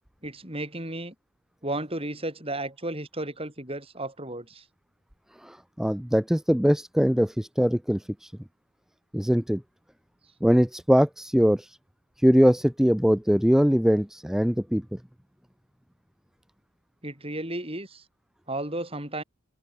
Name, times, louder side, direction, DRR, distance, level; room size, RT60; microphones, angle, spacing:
voice 1, 0.2-1.1 1.6-4.6 17.0-18.0 18.5-19.2, right 1 dB, 25° right, 7.9 m, -33 dB
voice 2, 5.4-8.3 9.1-9.6 10.4-11.8 12.2-15.0, equal, ahead, 0.4 m, -22 dB
open air
head